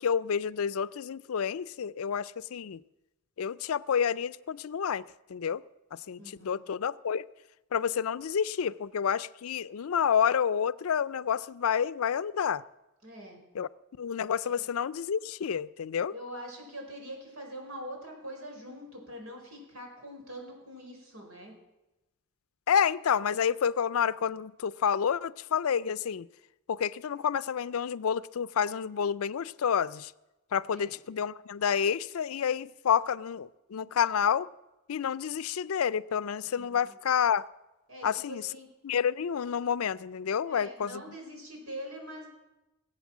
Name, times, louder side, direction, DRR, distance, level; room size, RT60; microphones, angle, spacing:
voice 1, 0.0-2.8 3.4-5.0 5.3-5.6 6.1-7.2 7.7-12.6 13.6-13.7 14.0-16.1 22.7-26.3 26.7-30.1 30.5-34.5 34.9-37.5 38.0-38.5 38.8-41.0, left 7 dB, 80° left, 18 dB, 0.4 m, -29 dB
voice 2, 6.2-6.6 13.0-13.4 14.4-14.6 16.1-21.5 30.7-30.9 36.4-36.9 37.9-38.7 40.4-42.3, equal, 90° right, 2 dB, 4.8 m, -44 dB
20.0 x 8.0 x 7.3 m, 1.0 s
head